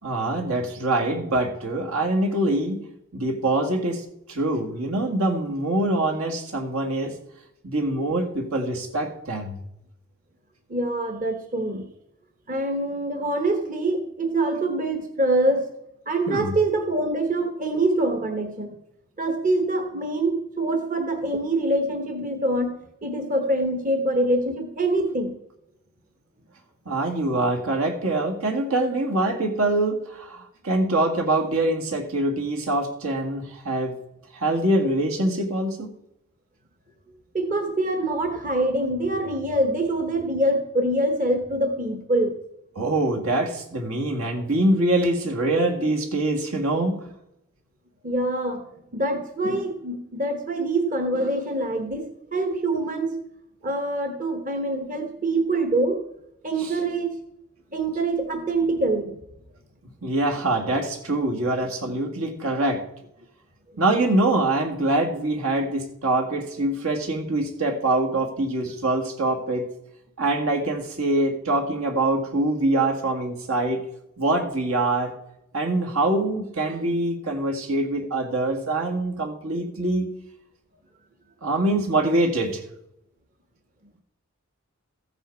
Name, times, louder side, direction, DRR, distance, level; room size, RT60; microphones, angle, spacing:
voice 1, 0.0-2.8 3.1-7.2 7.6-9.6 16.3-16.5 26.9-34.0 34.3-35.9 42.8-47.0 56.6-56.7 60.0-62.8 63.8-69.7 70.2-73.8 74.2-75.1 75.5-80.1 81.4-82.6, right 2 dB, 80° right, 2 dB, 2.1 m, -24 dB
voice 2, 10.7-11.9 12.5-15.7 16.1-18.7 19.2-25.3 37.3-42.4 48.0-48.6 48.9-53.2 53.6-56.0 56.4-57.2 57.7-59.2, right 2 dB, 35° right, 5 dB, 1.0 m, -25 dB
14.5 x 8.1 x 4.8 m, 0.81 s
head